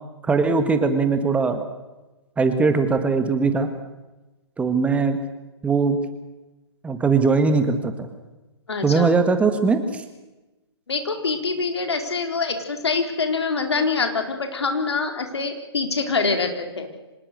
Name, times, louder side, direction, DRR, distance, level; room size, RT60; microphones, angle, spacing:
voice 1, 0.2-1.7 2.4-3.7 4.6-5.2 5.6-6.0 6.8-8.1 8.8-10.0, right 4 dB, 10° right, 8 dB, 1.7 m, -20 dB
voice 2, 8.7-9.1 10.9-16.9, left 4 dB, 70° left, 5 dB, 4.1 m, -25 dB
25.5 x 19.5 x 6.7 m, 1.1 s
figure-of-eight pair, 130°, 14 cm